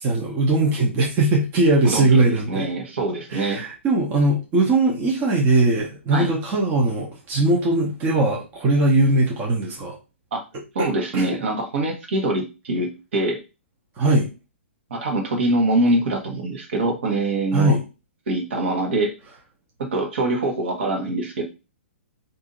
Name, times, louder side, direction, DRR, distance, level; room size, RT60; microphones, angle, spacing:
voice 1, 0.0-2.7 3.3-10.0 10.8-10.9 11.1-11.3 14.0-14.3 17.5-17.8, right 2 dB, 25° right, -2 dB, 0.9 m, -20 dB
voice 2, 1.8-3.6 6.1-6.3 10.3-10.4 10.7-13.4 14.9-17.8 18.3-19.1 19.8-21.4, right 2 dB, 65° right, 1 dB, 1.3 m, -24 dB
2.7 x 2.7 x 3.8 m, 0.29 s
hypercardioid pair, 125°, 7 cm